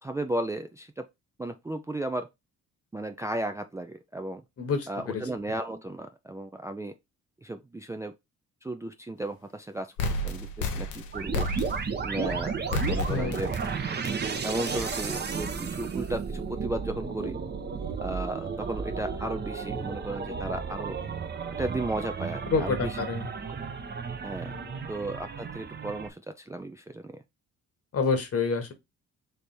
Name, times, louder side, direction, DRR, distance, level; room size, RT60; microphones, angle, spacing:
voice 1, 0.0-1.1 1.4-2.3 2.9-4.4 4.9-6.9 7.4-8.1 8.6-9.9 10.2-11.5 12.0-13.5 14.4-17.4 18.0-21.0 21.6-23.0 23.5-23.6 24.2-24.5 24.9-27.2, right 1 dB, 10° right, 0.3 m, -34 dB
voice 2, 4.6-5.2 13.1-13.4 22.5-23.3 24.4-24.8 27.9-28.7, left 4 dB, 50° left, 1.2 m, -28 dB
sound 1, 10.0-12.0 12.7-13.7 14.0-14.2 14.7-14.9, left 2 dB, 90° left, 0.8 m, -31 dB
sound 2, 11.1-26.1, right 5 dB, 35° right, 0.8 m, -33 dB
3.3 x 3.3 x 4.1 m
cardioid pair, 90°, 30 cm